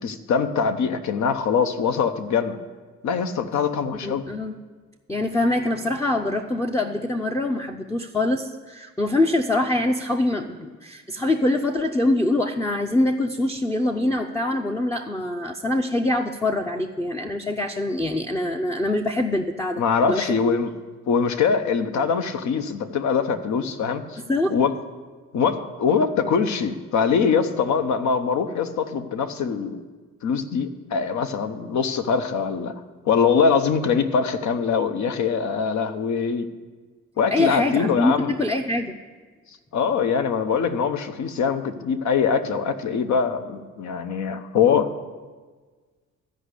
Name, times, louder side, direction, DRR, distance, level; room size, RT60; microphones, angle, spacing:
voice 1, 0.0-2.6 3.0-4.2 19.8-20.7 21.1-24.2 24.5-24.7 25.3-29.8 30.2-32.7 33.1-36.5 37.2-38.3 39.7-44.9, left 6 dB, 70° left, 9 dB, 0.9 m, -23 dB
voice 2, 4.0-4.6 5.1-19.8 20.1-20.4 24.3-24.6 37.3-39.0, left 1 dB, 10° left, 3 dB, 0.5 m, -24 dB
13.5 x 5.2 x 8.2 m, 1.4 s
cardioid pair, 90°, 30 cm